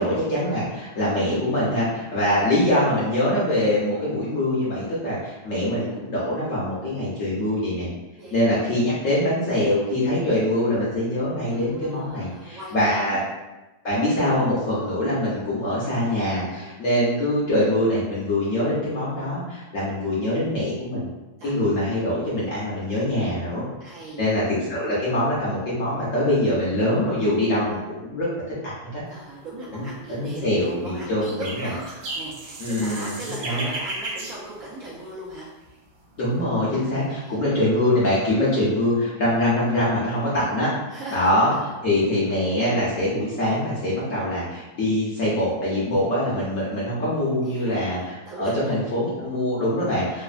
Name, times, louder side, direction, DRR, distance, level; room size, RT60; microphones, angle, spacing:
voice 1, 0.0-7.9 8.3-13.2 13.8-21.1 21.4-23.7 24.2-24.4 24.7-28.3 28.6-29.0 29.7-29.8 30.1-31.7 32.6-33.2 33.4-33.6 36.2-40.7 41.1-41.5 41.8-50.2, left 1 dB, 65° left, -8 dB, 0.8 m, -23 dB
voice 2, 8.1-8.7 11.5-13.2 16.5-16.9 21.4-21.5 23.8-24.2 29.1-35.5 36.7-37.4 40.9-41.6 47.4-48.8, right 1 dB, 70° right, -6 dB, 0.8 m, -39 dB
sound 1, 29.5-30.0 30.7-35.3 35.7-36.4, right 2 dB, 90° right, 1.3 m, -35 dB
3.1 x 2.0 x 2.4 m, 1.1 s
omnidirectional pair, 1.9 m